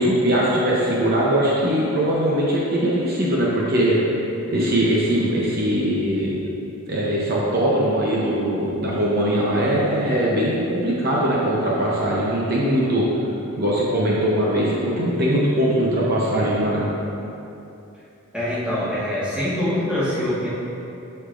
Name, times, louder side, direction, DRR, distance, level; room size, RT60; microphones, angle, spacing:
voice 1, 0.0-4.0 4.5-6.4 6.9-13.1 13.5-16.8, right 1 dB, 45° right, -6 dB, 0.8 m, -21 dB
voice 2, 18.3-20.5, left 1 dB, 5° right, -10 dB, 1.5 m, -24 dB
7.9 x 6.7 x 2.5 m, 2.9 s
head